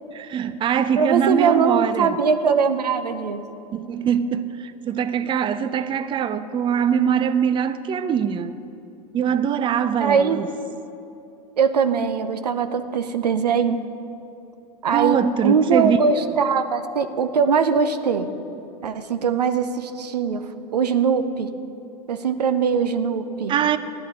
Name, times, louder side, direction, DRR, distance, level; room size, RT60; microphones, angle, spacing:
voice 1, 0.1-2.2 3.7-8.6 9.1-10.5 14.9-16.3 23.5-23.8, right 8 dB, 25° right, 0.5 m, -22 dB
voice 2, 1.0-3.4 10.0-10.4 11.6-13.8 14.8-18.3 18.8-20.4 20.7-21.5 22.1-23.6, right 6 dB, 85° right, 0.7 m, -21 dB
14.5 x 11.0 x 4.2 m
hypercardioid pair, 90°, 20 cm